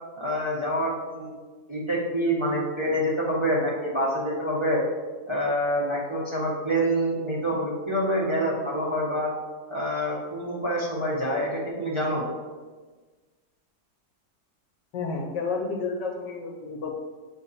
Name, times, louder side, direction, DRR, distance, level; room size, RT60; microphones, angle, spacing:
voice 1, 0.2-1.3 1.7-4.8 5.3-9.3 9.7-12.3, equal, 20° right, -6 dB, 1.1 m, -26 dB
voice 2, 14.9-16.9, left 4 dB, 80° left, 1 dB, 1.6 m, -30 dB
8.4 x 3.5 x 4.1 m, 1.3 s
omnidirectional pair, 1.8 m